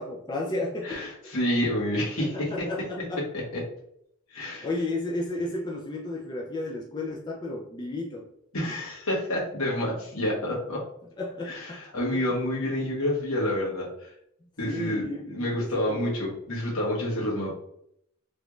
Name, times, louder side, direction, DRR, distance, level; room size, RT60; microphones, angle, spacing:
voice 1, 0.0-1.3 2.2-3.2 4.6-8.3 11.2-11.8 14.6-16.0, left 2 dB, 20° left, -1 dB, 0.3 m, -33 dB
voice 2, 0.8-2.9 3.5-3.6 4.3-4.7 8.5-10.8 11.4-14.1 14.6-17.5, left 1 dB, 80° left, -4 dB, 1.4 m, -29 dB
3.1 x 2.5 x 3.0 m, 0.73 s
head